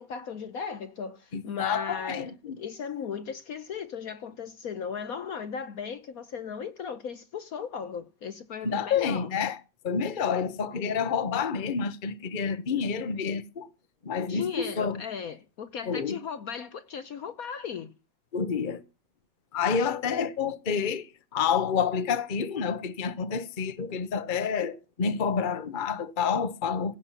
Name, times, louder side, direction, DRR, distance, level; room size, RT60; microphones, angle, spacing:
voice 1, 0.0-2.3 2.6-9.3 14.3-17.9, left 6 dB, 60° left, 1.2 m, -36 dB
voice 2, 1.3-2.6 8.6-9.6 9.8-13.7 14.0-14.5 14.8-15.0 15.9-16.2 18.3-18.8 19.5-26.9, left 6 dB, 35° left, 1.0 m, -28 dB
16.5 x 5.6 x 7.4 m
omnidirectional pair, 2.0 m